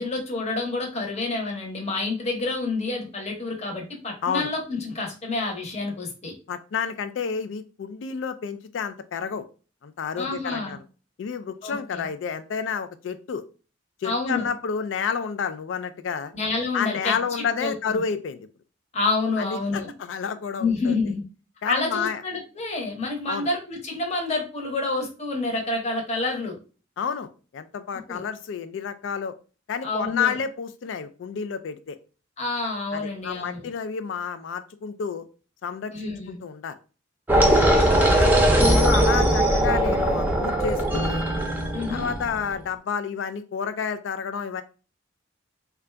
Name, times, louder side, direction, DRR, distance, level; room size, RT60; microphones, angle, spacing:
voice 1, 0.0-6.3 10.2-10.8 11.6-12.0 14.0-14.5 16.3-18.0 18.9-19.9 20.6-21.2 21.7-26.6 28.1-28.2 29.8-30.3 32.4-33.7 35.9-36.4 37.3-38.1 41.7-42.1, left 3 dB, 35° left, 1 dB, 0.9 m, -28 dB
voice 2, 6.5-9.5 9.8-10.8 11.2-13.4 14.0-16.3 16.7-18.5 19.4-20.9 21.6-22.2 23.3-23.5 27.0-29.4 29.7-32.0 32.9-35.3 35.6-36.8 37.5-37.6 38.2-38.4 38.8-41.3 41.9-44.6, left 6 dB, 75° left, 11 dB, 0.3 m, -30 dB
sound 1, 37.3-42.4, right 1 dB, 10° right, 0.6 m, -20 dB
3.7 x 2.3 x 3.3 m, 0.36 s
head